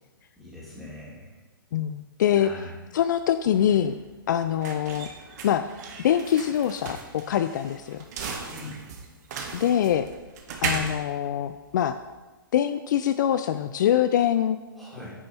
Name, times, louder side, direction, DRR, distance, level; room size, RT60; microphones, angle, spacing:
voice 1, 0.4-1.4 2.3-2.8 8.5-8.8 14.8-15.1, left 1 dB, ahead, -8 dB, 3.0 m, -42 dB
voice 2, 1.7-2.5 2.9-4.0 4.3-5.1 5.4-5.6 6.0-8.0 9.5-10.1 10.6-12.0 12.5-14.6, left 10 dB, 55° left, 10 dB, 0.4 m, -24 dB
sound 1, 3.2-12.2, right 5 dB, 50° right, 1.3 m, -37 dB
9.7 x 5.3 x 4.3 m, 1.2 s
hypercardioid pair, 130°, 12 cm